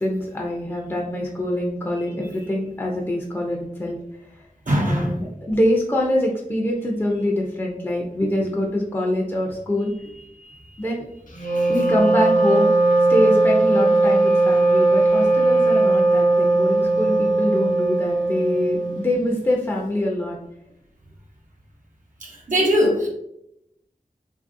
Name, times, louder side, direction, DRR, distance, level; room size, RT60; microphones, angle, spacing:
voice 1, 0.0-4.0 4.7-9.9 10.8-11.1 11.7-12.7 13.1-20.4, left 1 dB, 15° left, -1 dB, 0.5 m, -24 dB
voice 2, 4.7-5.2 10.4-10.6 22.2-23.1, equal, 65° right, -2 dB, 0.7 m, -21 dB
Wind instrument woodwind instrument, 11.3-19.2, right 2 dB, 65° left, 0.7 m, -18 dB
2.8 x 2.6 x 2.6 m, 0.79 s
wide cardioid pair, 45°, 14 cm